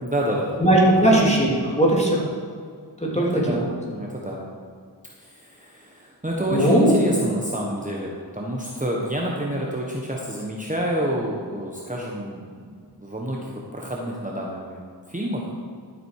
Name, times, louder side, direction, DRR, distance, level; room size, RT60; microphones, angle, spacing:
voice 1, 0.0-0.6 3.1-4.4 5.2-12.7 13.0-14.8 15.1-15.5, equal, 15° right, -2 dB, 1.3 m, -28 dB
voice 2, 0.6-2.2 3.1-3.6 6.5-7.0, right 1 dB, 15° left, -4 dB, 3.1 m, -18 dB
12.5 x 7.8 x 4.8 m, 2.2 s
wide cardioid pair, 55°, 44 cm